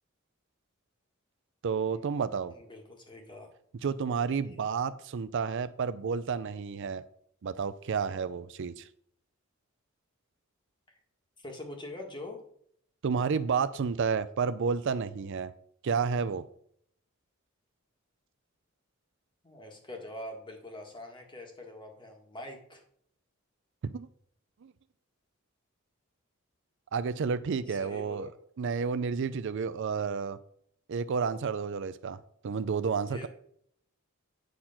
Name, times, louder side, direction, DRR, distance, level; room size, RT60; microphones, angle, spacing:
voice 1, 1.6-2.5 3.8-7.0 7.4-8.9 13.0-15.5 15.8-16.5 23.8-24.1 24.6-24.7 26.9-28.3 28.6-30.4 30.9-32.2 32.4-33.3, right 5 dB, 60° right, 14 dB, 0.4 m, -31 dB
voice 2, 2.5-3.5 4.4-4.6 11.4-12.4 19.4-22.8 27.7-28.3 33.1-33.3, left 1 dB, 25° left, 2 dB, 1.7 m, -44 dB
9.2 x 4.4 x 5.8 m, 0.66 s
head